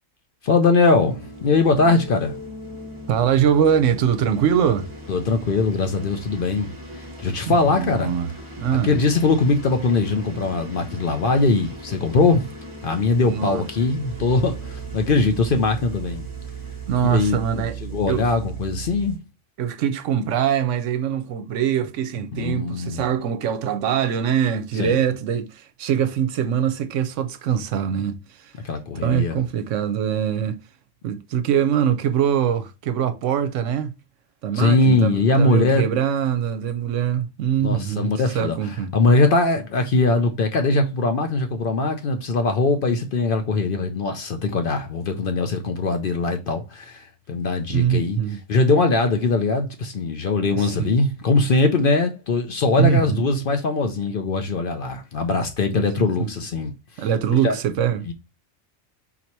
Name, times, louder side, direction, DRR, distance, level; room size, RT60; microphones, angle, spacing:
voice 1, 0.4-2.3 5.1-6.7 6.9-8.1 8.8-12.4 12.8-16.3 17.0-19.2 22.3-23.1 24.8-25.0 28.6-29.4 34.6-35.9 37.6-38.6 38.9-48.2 48.5-56.7 57.4-57.6 58.1-58.2, left 3 dB, 55° left, 0.7 m, -21 dB
sound 1, 0.9-19.2, left 1 dB, 25° right, 0.9 m, -40 dB
voice 2, 3.1-4.9 7.4-8.3 8.6-9.0 13.3-13.6 16.9-17.8 18.1-18.3 19.6-28.5 29.0-30.6 31.0-33.9 34.4-38.9 47.7-48.4 50.5-50.9 52.8-53.2 55.7-56.3 57.0-58.1, right 9 dB, 80° right, 0.9 m, -23 dB
sound 2, 14.1-19.1, right 11 dB, 60° right, 0.4 m, -35 dB
4.1 x 2.8 x 4.4 m
omnidirectional pair, 1.3 m